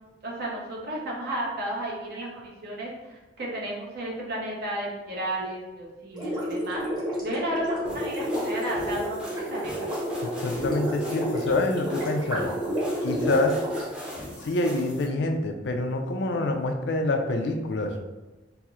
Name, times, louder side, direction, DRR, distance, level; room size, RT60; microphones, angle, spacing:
voice 1, 0.2-6.8 7.2-9.9, right 1 dB, 60° right, -4 dB, 0.8 m, -33 dB
Gurgling, 6.1-14.5, equal, 25° right, 0.9 m, -30 dB
sound 1, 7.8-15.1, equal, 5° right, 0.6 m, -41 dB
voice 2, 10.4-12.5 13.0-13.6 14.4-17.9, left 2 dB, 70° left, 4 dB, 0.4 m, -26 dB
4.2 x 2.0 x 2.3 m, 1.1 s
head